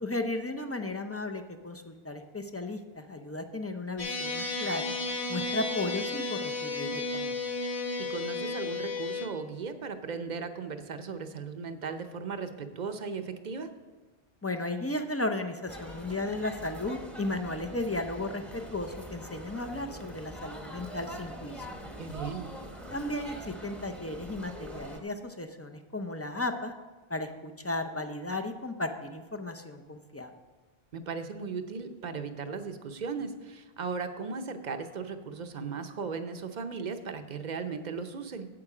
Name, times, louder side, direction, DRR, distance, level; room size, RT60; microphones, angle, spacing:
voice 1, 0.0-4.9 5.3-7.4 14.4-21.7 22.9-26.7 27.1-30.3, left 2 dB, 25° left, 6 dB, 0.3 m, -35 dB
sound 1, 4.0-9.3, left 3 dB, 80° left, 1.6 m, -33 dB
voice 2, 8.0-13.7 22.0-22.5 30.9-38.5, right 5 dB, 50° right, 8 dB, 0.7 m, -37 dB
sound 2, 15.7-25.0, equal, ahead, 0.8 m, -43 dB
8.6 x 7.9 x 4.8 m, 1.3 s
omnidirectional pair, 1.1 m